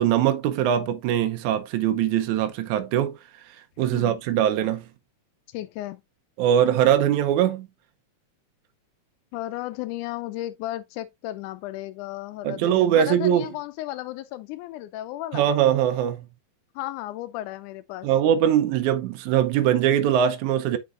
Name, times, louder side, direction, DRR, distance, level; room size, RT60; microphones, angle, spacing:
voice 1, 0.0-3.2 3.8-4.9 6.4-7.7 12.4-13.5 15.3-16.2 18.0-20.8, right 10 dB, 80° right, 2.1 m, -21 dB
voice 2, 5.5-6.0 9.3-15.5 16.8-18.1, left 15 dB, 85° left, 2.0 m, -34 dB
8.3 x 5.3 x 2.4 m
omnidirectional pair, 3.5 m